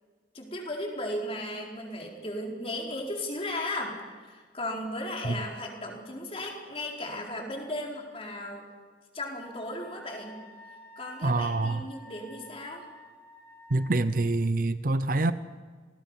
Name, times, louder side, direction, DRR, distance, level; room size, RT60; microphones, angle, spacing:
voice 1, 0.3-4.0 4.2-8.6 9.1-10.3 11.0-12.9, left 1 dB, 30° left, 0 dB, 4.3 m, -36 dB
Wind instrument woodwind instrument, 9.4-14.3, left 1 dB, 15° left, 5.7 m, -50 dB
voice 2, 11.2-11.9 13.7-15.3, right 2 dB, 45° right, 13 dB, 0.7 m, -26 dB
27.5 x 19.5 x 5.7 m, 1.5 s
head